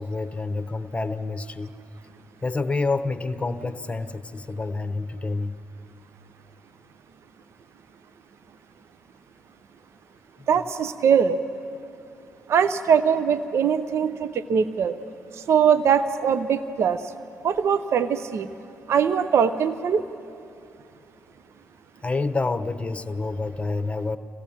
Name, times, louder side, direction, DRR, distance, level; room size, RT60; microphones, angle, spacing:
voice 1, 0.0-1.7 2.4-5.6 22.0-24.2, left 3 dB, 20° left, 9 dB, 1.1 m, -28 dB
voice 2, 10.5-11.4 12.5-14.9 15.5-17.0 17.4-18.5 18.9-20.0, right 7 dB, 55° right, 11 dB, 0.7 m, -21 dB
26.0 x 17.0 x 7.2 m, 2.7 s
hypercardioid pair, 45°, 5 cm